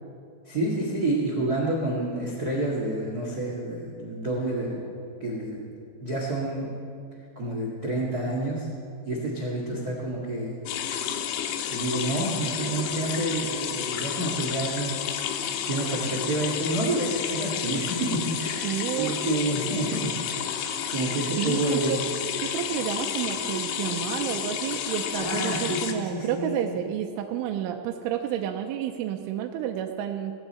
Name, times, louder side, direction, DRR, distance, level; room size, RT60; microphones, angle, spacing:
voice 1, 0.4-4.8 5.2-5.6 6.0-6.7 7.3-8.7 9.0-10.6 11.7-15.0 15.6-20.5 20.9-22.0 25.1-26.7, right 2 dB, 70° right, -2 dB, 0.9 m, -29 dB
sound 1, 10.7-25.9, left 9 dB, 80° left, 3.3 m, -31 dB
voice 2, 18.6-19.2 21.4-22.0 22.4-30.3, right 10 dB, 90° right, 3 dB, 3.1 m, -30 dB
18.0 x 17.0 x 4.4 m, 2.3 s
omnidirectional pair, 5.6 m